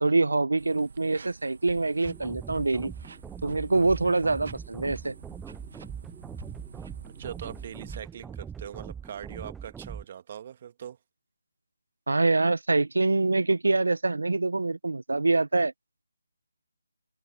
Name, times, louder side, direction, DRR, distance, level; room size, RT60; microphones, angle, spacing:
voice 1, 0.0-2.9 3.4-5.1 12.1-15.7, right 3 dB, 80° right, 0.9 m, -25 dB
sound 1, 0.6-8.0, right 5 dB, 55° right, 2.0 m, -48 dB
sound 2, 2.0-10.0, right 7 dB, 5° right, 0.4 m, -41 dB
voice 2, 7.1-11.0, right 9 dB, 35° right, 1.7 m, -41 dB
figure-of-eight pair, 155°, 0 cm